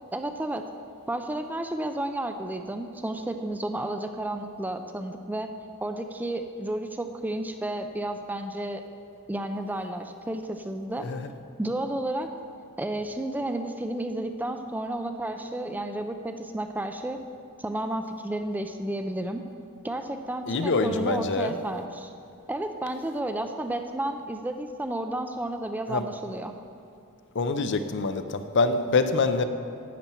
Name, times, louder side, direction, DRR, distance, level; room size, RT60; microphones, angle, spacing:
voice 1, 0.1-0.6 1.1-5.5 5.8-8.8 9.3-11.1 11.6-12.3 12.8-17.2 17.6-19.4 19.8-22.1 22.5-26.5, right 1 dB, 10° right, 7 dB, 0.3 m, -32 dB
voice 2, 10.9-11.3 20.5-21.6 25.9-26.0 27.3-29.4, left 3 dB, 55° left, 9 dB, 0.5 m, -25 dB
11.0 x 4.4 x 8.1 m, 2.5 s
head